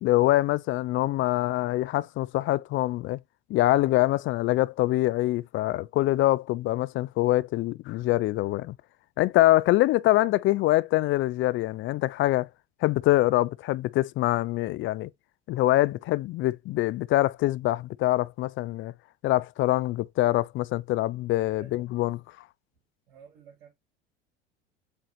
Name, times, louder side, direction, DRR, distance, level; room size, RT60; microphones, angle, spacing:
voice 1, 0.0-3.2 3.5-8.8 9.2-12.5 12.8-15.1 15.5-18.9 19.2-22.2, left 16 dB, 45° left, 0.4 m, -24 dB
voice 2, 21.6-21.9 23.1-23.7, right 7 dB, 70° right, 3.1 m, -52 dB
8.0 x 4.0 x 3.0 m
hypercardioid pair, 75°, 29 cm